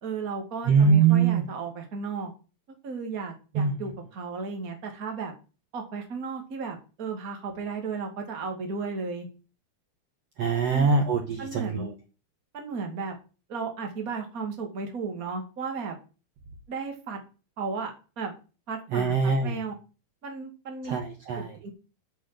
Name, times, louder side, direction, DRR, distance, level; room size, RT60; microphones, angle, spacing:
voice 1, 0.0-2.3 2.8-5.3 5.7-9.3 10.7-10.9 11.4-11.9 12.5-13.1 13.5-15.9 16.7-17.2 17.6-17.9 18.2-18.3 18.7-19.7 20.2-21.0 21.3-21.7, right 4 dB, 35° right, 3 dB, 1.5 m, -34 dB
voice 2, 0.7-1.4 3.5-3.9 10.4-11.9 18.9-19.6 20.9-21.5, right 5 dB, 70° right, 4 dB, 1.5 m, -23 dB
7.9 x 6.5 x 7.6 m, 0.34 s
omnidirectional pair, 4.8 m